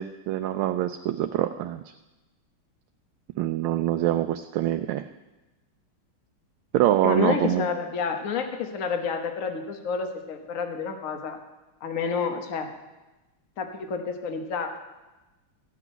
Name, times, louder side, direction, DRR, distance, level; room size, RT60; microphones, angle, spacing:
voice 1, 0.0-1.8 3.4-5.1 6.7-7.6, right 13 dB, 80° right, 8 dB, 1.4 m, -25 dB
voice 2, 7.0-11.4 11.8-12.7 13.6-14.8, left 5 dB, 45° left, 5 dB, 1.4 m, -29 dB
14.5 x 6.1 x 9.0 m, 1.1 s
omnidirectional pair, 2.3 m